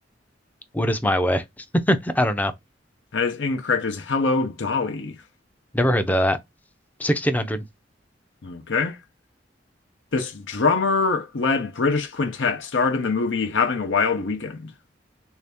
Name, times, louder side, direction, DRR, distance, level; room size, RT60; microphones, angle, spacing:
voice 1, 0.7-2.5 5.7-6.4 7.0-7.6, equal, 10° left, 0.4 m, -22 dB
voice 2, 3.1-5.2 8.4-9.0 10.1-14.7, left 4 dB, 85° left, 0.7 m, -24 dB
3.2 x 2.7 x 3.4 m
head